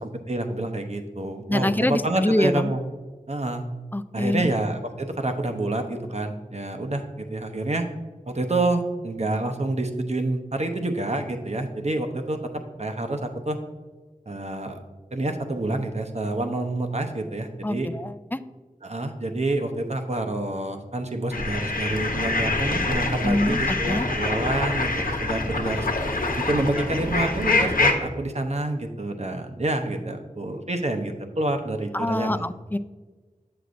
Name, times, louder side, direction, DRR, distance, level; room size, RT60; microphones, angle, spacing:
voice 1, 0.0-2.8 3.3-3.7 4.1-7.9 8.3-13.6 14.3-14.8 15.1-17.9 18.8-24.9 25.2-25.9 26.4-32.5, right 2 dB, 55° right, 5 dB, 0.8 m, -28 dB
voice 2, 1.5-2.7 3.9-4.5 17.6-18.4 23.2-24.1 31.9-32.8, left 1 dB, 15° left, 12 dB, 0.4 m, -25 dB
sound 1, 21.3-27.9, left 2 dB, 85° left, 0.9 m, -25 dB
8.0 x 7.9 x 2.5 m, 1.3 s
wide cardioid pair, 50°, 14 cm